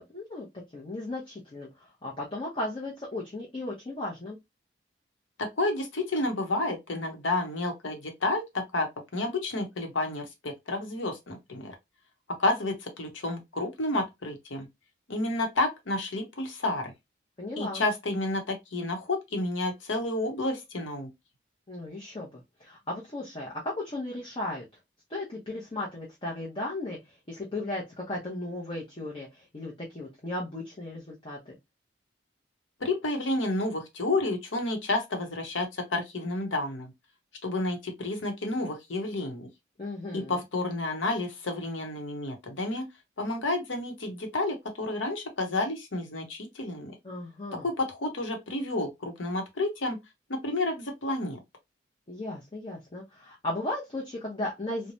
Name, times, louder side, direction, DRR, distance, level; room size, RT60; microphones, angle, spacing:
voice 1, 0.1-0.5 0.7-4.4 17.4-17.8 21.7-24.6 25.1-31.6 39.8-40.4 47.0-47.7 52.1-54.9, left 2 dB, 30° left, 0.7 m, -36 dB
voice 2, 5.4-11.7 12.4-14.7 15.1-16.9 17.6-21.1 32.8-36.9 37.4-39.5 40.1-42.8 43.2-47.0 47.6-50.0 50.3-51.4, left 2 dB, 85° left, 0.9 m, -30 dB
3.1 x 2.1 x 2.5 m
head